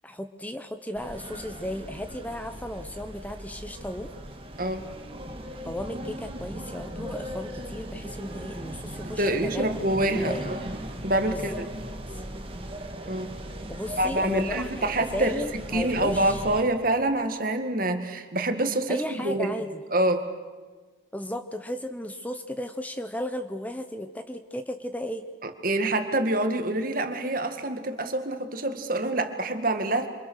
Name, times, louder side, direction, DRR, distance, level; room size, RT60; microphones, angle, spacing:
voice 1, 0.0-4.1 5.6-9.6 9.9-10.5 11.3-11.4 12.1-12.2 13.7-16.4 18.9-19.8 21.1-25.2, left 1 dB, 10° left, 8 dB, 0.9 m, -35 dB
sound 1, 1.0-16.6, equal, 30° right, 2.2 m, -38 dB
voice 2, 9.0-10.7 11.0-11.7 13.1-13.4 14.0-19.5 19.9-20.3 25.4-30.1, right 1 dB, 45° right, 7 dB, 2.2 m, -26 dB
28.0 x 26.5 x 6.6 m, 1.4 s
head